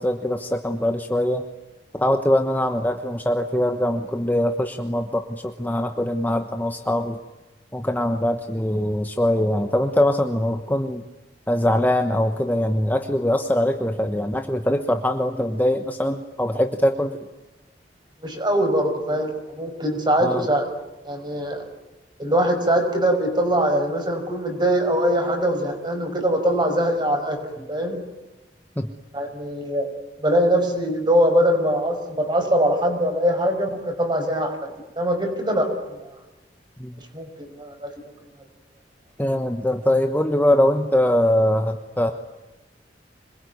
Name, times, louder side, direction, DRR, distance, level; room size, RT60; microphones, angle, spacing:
voice 1, 0.0-1.5 1.9-7.2 7.7-11.0 11.5-17.2 20.2-20.5 27.6-27.7 28.8-28.9 36.8-37.0 39.2-42.1, left 1 dB, 10° left, 5 dB, 1.2 m, -22 dB
voice 2, 18.2-20.7 21.0-21.6 22.2-27.4 27.7-28.0 29.1-29.9 30.2-34.5 35.0-36.0 37.1-37.9, equal, 25° right, 5 dB, 5.7 m, -22 dB
26.5 x 21.5 x 9.5 m, 1.1 s
head